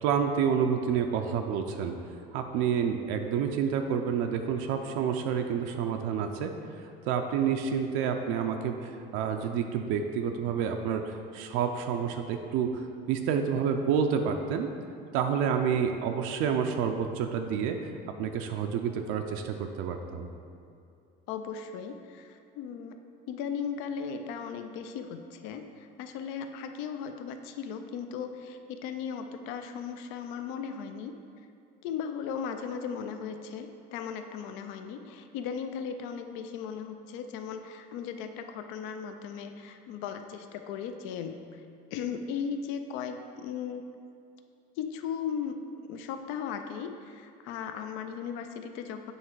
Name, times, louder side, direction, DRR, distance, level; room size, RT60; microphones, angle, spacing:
voice 1, 0.0-2.0 2.3-6.5 7.1-12.7 13.1-14.7 15.1-17.8 18.2-20.3, right 7 dB, 80° right, 4 dB, 0.5 m, -29 dB
voice 2, 21.3-23.0 23.3-31.2 31.8-41.6 41.9-43.8 44.8-49.1, left 7 dB, 80° left, 7 dB, 0.5 m, -37 dB
8.0 x 3.2 x 4.6 m, 2.6 s
cardioid pair, 145°, 20 cm